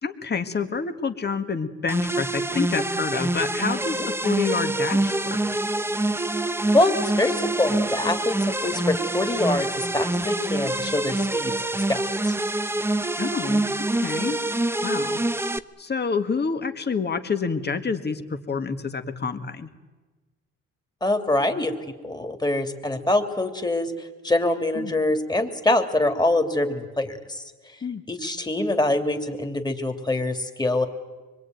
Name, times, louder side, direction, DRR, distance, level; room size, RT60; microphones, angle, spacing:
voice 1, 0.0-5.4 13.2-13.6 13.9-14.4 14.8-15.2 15.8-19.7 24.8-25.0 27.8-28.0, left 5 dB, 35° left, 8 dB, 2.0 m, -28 dB
sound 1, 1.9-15.6, right 2 dB, 10° right, 0.9 m, -26 dB
voice 2, 6.7-11.5 11.9-12.4 21.0-21.7 22.0-27.4 28.1-30.9, left 2 dB, 15° left, 5 dB, 2.9 m, -24 dB
25.0 x 22.0 x 9.5 m, 1.3 s
cardioid pair, 90°, 30 cm